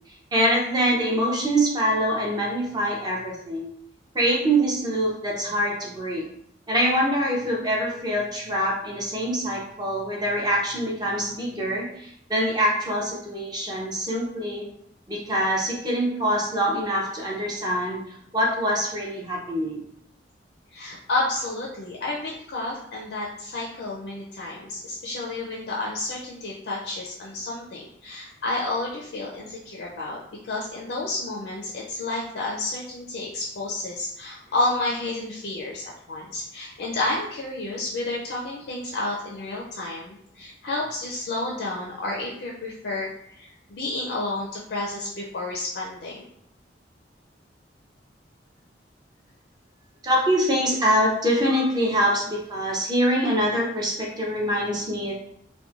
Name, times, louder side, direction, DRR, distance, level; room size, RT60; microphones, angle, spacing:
voice 1, 0.3-3.7 4.1-6.2 6.7-14.6 15.1-18.0 18.3-19.8 50.0-55.1, equal, 25° right, -3 dB, 0.6 m, -24 dB
voice 2, 20.7-30.2 30.4-46.3, left 2 dB, 70° left, -3 dB, 0.4 m, -30 dB
2.9 x 2.1 x 2.3 m, 0.71 s
head